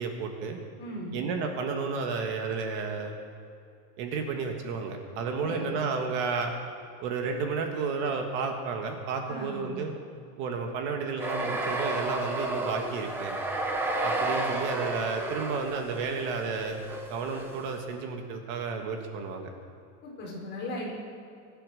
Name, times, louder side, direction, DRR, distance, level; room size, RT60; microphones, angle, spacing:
voice 1, 0.0-0.6 1.1-3.1 4.0-6.5 7.0-9.9 10.4-13.4 14.0-16.8 17.1-19.5, right 5 dB, 50° right, 4 dB, 1.7 m, -32 dB
voice 2, 0.8-1.1 5.4-5.7 9.3-9.7 20.0-20.9, left 1 dB, 25° left, -3 dB, 4.8 m, -37 dB
sound 1, 11.2-17.8, right 2 dB, 5° right, 0.4 m, -32 dB
24.0 x 9.0 x 6.4 m, 2.6 s
supercardioid pair, 175°, 46 cm